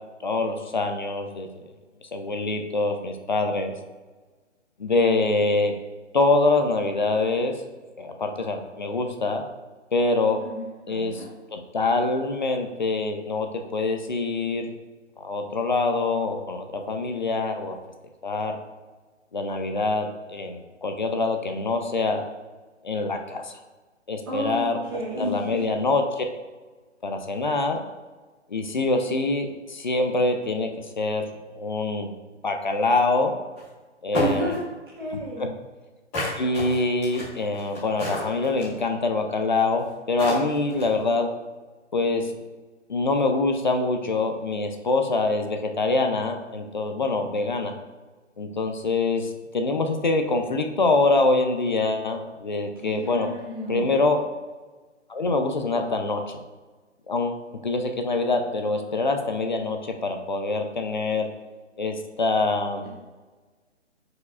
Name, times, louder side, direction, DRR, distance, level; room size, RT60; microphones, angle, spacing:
voice 1, 0.2-1.5 2.1-3.7 4.8-5.7 6.1-7.5 8.0-9.4 9.9-10.4 10.9-11.2 11.5-14.7 15.2-17.8 18.2-18.5 19.3-22.2 22.8-23.5 24.1-24.8 25.2-26.2 27.0-27.8 28.5-30.7 31.0-31.2 31.6-32.1 32.4-33.3 34.0-34.5 35.1-35.5 36.4-41.3 41.9-42.2 42.9-47.7 48.4-53.3 53.7-54.2 55.1-56.2 57.1-61.3 61.8-62.8, left 3 dB, 40° left, 5 dB, 0.6 m, -25 dB
voice 2, 10.9-11.3 24.3-24.6 24.9-25.6 34.1-34.6 35.0-35.5 52.8-53.9, right 1 dB, 20° right, -7 dB, 1.2 m, -31 dB
sound 1, 33.6-33.7 34.1-34.6 36.1-38.8 39.8-39.9 40.2-41.0, left 2 dB, 10° left, 1.4 m, -29 dB
10.5 x 4.9 x 2.4 m, 1.3 s
hypercardioid pair, 170°, 36 cm